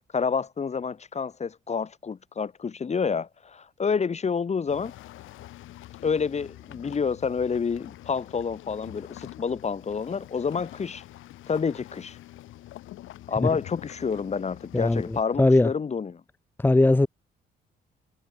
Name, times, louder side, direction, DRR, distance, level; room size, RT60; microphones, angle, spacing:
voice 1, 0.1-4.9 6.0-11.0 11.5-12.2 13.3-16.2, left 5 dB, 35° left, 1.2 m, -28 dB
sound 1, 4.7-15.2, left 15 dB, 85° left, 1.8 m, -46 dB
voice 2, 14.7-15.7 16.6-17.1, left 2 dB, 10° left, 0.6 m, -20 dB
cardioid pair, 90°, 20 cm